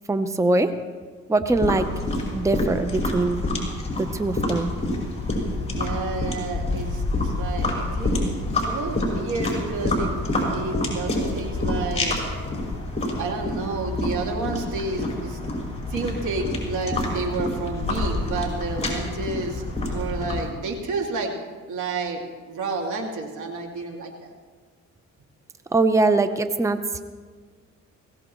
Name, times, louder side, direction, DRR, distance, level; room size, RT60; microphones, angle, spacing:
voice 1, 0.1-0.7 1.3-1.9 2.3-3.5 4.0-4.7 25.7-27.0, right 2 dB, 10° right, 9 dB, 0.7 m, -22 dB
sound 1, 1.5-20.5, left 2 dB, 20° left, 5.5 m, -27 dB
voice 2, 5.7-8.3 8.6-10.2 10.5-12.2 13.2-15.4 15.9-19.6 19.9-21.3 21.7-24.3, right 3 dB, 80° right, 1 dB, 2.4 m, -30 dB
21.5 x 17.5 x 3.1 m, 1.5 s
cardioid pair, 90°, 30 cm